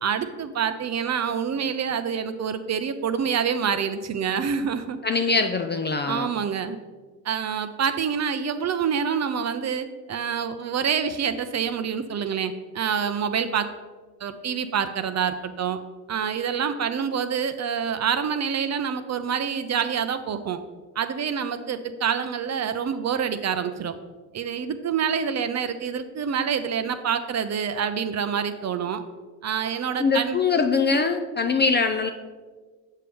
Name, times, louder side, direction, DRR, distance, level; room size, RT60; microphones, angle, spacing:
voice 1, 0.0-5.0 6.1-6.8 7.2-13.7 14.2-15.8 16.1-20.6 21.0-23.9 24.3-29.0 29.4-30.4, right 7 dB, 35° right, 10 dB, 0.5 m, -27 dB
voice 2, 5.0-6.3 30.0-32.1, left 4 dB, 25° left, 7 dB, 0.4 m, -22 dB
7.4 x 5.3 x 3.4 m, 1.4 s
hypercardioid pair, 60°, 48 cm